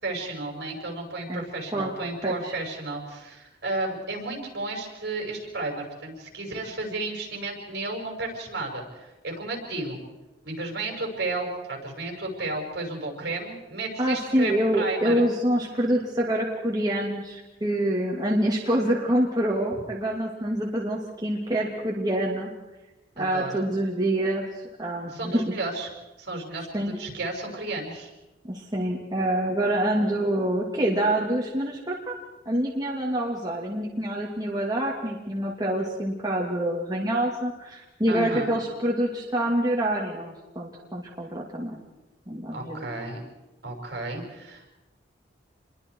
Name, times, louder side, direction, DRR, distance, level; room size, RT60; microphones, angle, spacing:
voice 1, 0.0-10.0 10.4-15.3 23.2-23.6 25.1-25.9 26.2-28.1 38.1-38.5 42.5-43.2 43.6-44.7, right 2 dB, 60° right, 1 dB, 5.8 m, -33 dB
voice 2, 14.0-22.5 23.2-24.4 24.8-25.5 26.7-26.9 28.4-32.1 32.5-41.7 42.3-42.9, right 1 dB, 20° right, -3 dB, 2.5 m, -26 dB
28.0 x 22.5 x 4.7 m, 1.0 s
head